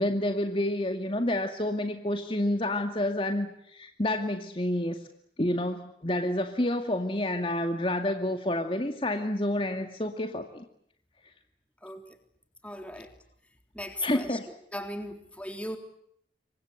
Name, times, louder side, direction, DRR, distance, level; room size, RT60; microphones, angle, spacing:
voice 1, 0.0-5.0 5.4-10.6 14.0-14.5, left 1 dB, 30° left, 5 dB, 2.2 m, -29 dB
voice 2, 12.6-13.1 13.8-14.4 14.7-15.8, left 1 dB, 10° left, 6 dB, 3.6 m, -37 dB
28.5 x 24.5 x 8.1 m, 0.70 s
head